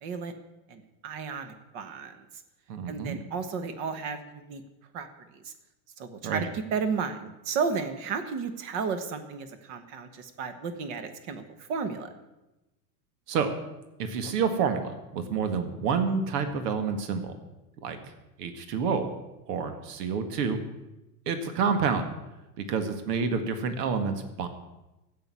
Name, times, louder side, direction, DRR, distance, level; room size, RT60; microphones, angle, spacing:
voice 1, 0.0-0.3 0.7-2.4 2.9-4.6 4.9-5.1 5.3-5.5 6.0-12.1, right 5 dB, 35° right, 10 dB, 1.2 m, -33 dB
voice 2, 2.7-3.2 6.2-6.5 13.3-13.5 14.0-17.3 17.8-18.0 18.4-19.1 19.5-20.6 21.3-22.1 22.6-24.5, right 5 dB, 70° right, 8 dB, 1.9 m, -28 dB
12.0 x 8.5 x 9.5 m, 1.0 s
supercardioid pair, 170°, 50 cm